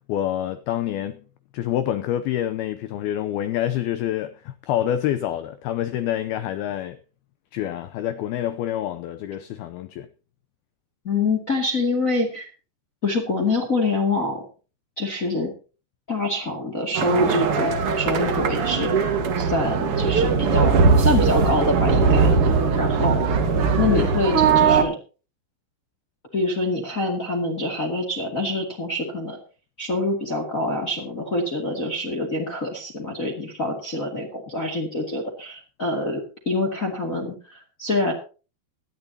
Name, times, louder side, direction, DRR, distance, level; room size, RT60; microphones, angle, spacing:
voice 1, 0.1-1.2 1.5-7.0 7.5-10.1 23.9-24.1, left 11 dB, 85° left, 2.2 m, -27 dB
voice 2, 11.0-12.5 13.0-14.5 15.0-15.5 16.1-22.3 22.8-23.3 23.8-25.0 26.3-29.4 29.8-38.1, left 2 dB, 30° left, 1.7 m, -25 dB
sound 1, 16.9-24.8, right 5 dB, 65° right, 1.4 m, -20 dB
19.0 x 13.0 x 2.8 m
omnidirectional pair, 5.3 m